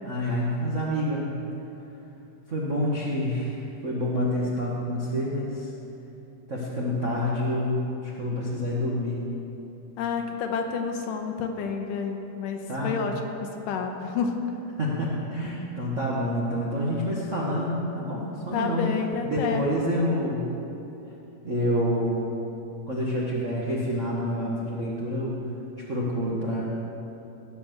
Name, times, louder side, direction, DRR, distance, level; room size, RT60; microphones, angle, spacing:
voice 1, 0.0-1.3 2.5-3.5 3.8-5.7 6.5-9.2 12.7-13.1 14.8-18.9 19.2-20.4 21.4-22.3 22.9-25.4 25.9-26.7, equal, 75° right, -5 dB, 0.6 m, -27 dB
voice 2, 10.0-13.3 13.7-14.3 18.5-19.7, left 5 dB, 80° left, 4 dB, 2.4 m, -29 dB
17.5 x 6.1 x 6.8 m, 3.0 s
omnidirectional pair, 4.0 m